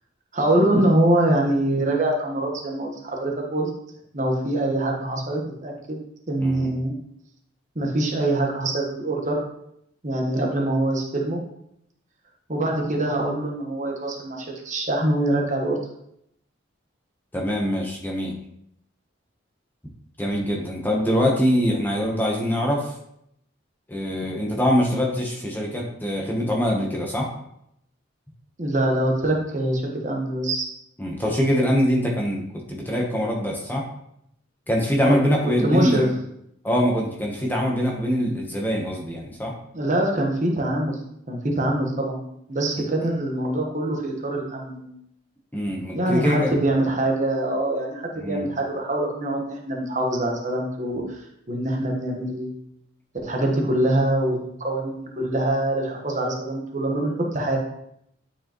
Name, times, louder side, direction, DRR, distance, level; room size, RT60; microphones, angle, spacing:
voice 1, 0.3-3.7 4.1-6.0 6.3-6.9 7.7-9.4 10.0-11.4 12.5-15.8 28.6-30.7 35.0-35.3 35.6-36.1 39.7-41.0 41.3-42.2 42.5-44.9 45.9-51.2 51.5-52.6 53.2-57.6, right 1 dB, 40° right, 0 dB, 1.2 m, -24 dB
voice 2, 17.3-18.3 20.2-22.9 23.9-27.3 31.0-33.9 34.7-36.1 36.6-39.5 45.5-46.5 48.1-48.4, equal, 10° left, -1 dB, 0.9 m, -23 dB
9.2 x 4.7 x 3.0 m, 0.74 s
head